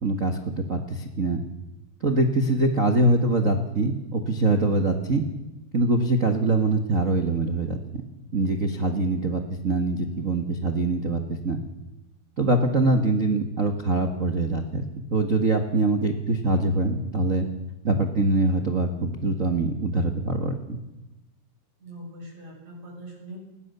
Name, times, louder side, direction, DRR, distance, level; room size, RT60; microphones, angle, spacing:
voice 1, 0.0-1.4 2.0-5.2 5.7-7.8 8.3-11.6 12.4-14.9 15.1-17.5 17.8-20.8, right 2 dB, 85° right, 4 dB, 0.7 m, -23 dB
voice 2, 21.8-23.4, right 1 dB, 45° right, 0 dB, 8.5 m, -42 dB
29.5 x 20.5 x 6.9 m, 1.1 s
omnidirectional pair, 4.5 m